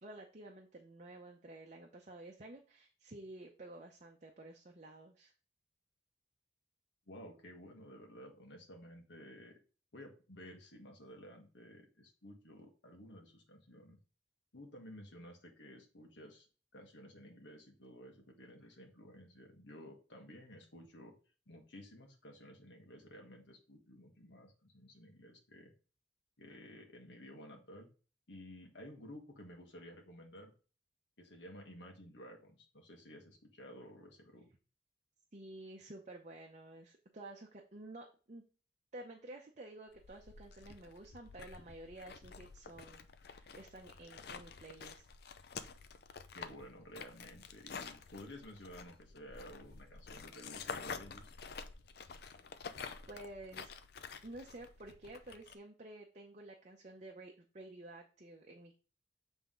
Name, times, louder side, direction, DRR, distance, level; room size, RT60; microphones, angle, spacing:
voice 1, 0.0-5.3 35.3-38.4 38.9-45.0 53.1-53.7 54.2-58.8, right 2 dB, 40° right, 1 dB, 0.7 m, -51 dB
voice 2, 7.1-9.5 9.9-14.0 14.5-16.5 16.7-21.1 21.5-25.7 26.4-27.9 28.3-30.5 31.2-34.5 46.3-51.3, equal, 80° left, 2 dB, 1.6 m, -53 dB
sound 1, 39.9-55.5, left 5 dB, 60° left, 0.5 m, -49 dB
7.4 x 3.5 x 3.8 m, 0.36 s
head